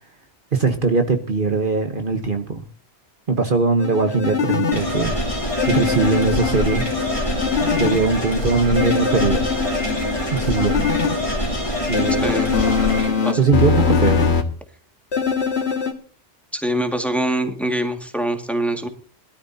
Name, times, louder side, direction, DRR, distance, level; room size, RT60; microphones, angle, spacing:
voice 1, 0.5-2.6 3.3-5.1 5.7-6.8 7.8-9.5 10.3-10.8 11.9-12.3 13.4-14.2, right 4 dB, 50° right, 5 dB, 1.3 m, -20 dB
sound 1, 3.8-4.8 5.6-8.0 8.8-11.1 11.9-14.4 15.1-15.9, left 5 dB, 65° left, 1.9 m, -22 dB
sound 2, 4.7-13.1, left 1 dB, 25° left, 3.0 m, -25 dB
voice 2, 16.5-18.9, right 1 dB, ahead, 4 dB, 2.0 m, -23 dB
22.0 x 13.0 x 2.8 m, 0.41 s
omnidirectional pair, 1.2 m